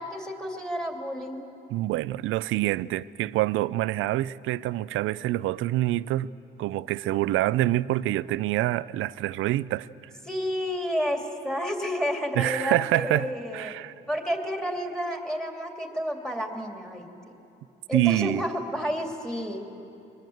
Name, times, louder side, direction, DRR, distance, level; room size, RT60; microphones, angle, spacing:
voice 1, 0.0-1.4 10.3-13.7 14.1-17.1 17.9-19.6, equal, 5° left, 2.7 m, -30 dB
voice 2, 1.7-6.3 6.6-9.9 12.4-13.9 17.9-18.4, right 15 dB, 90° right, 0.5 m, -26 dB
23.5 x 20.0 x 7.9 m
cardioid pair, 90°, 20 cm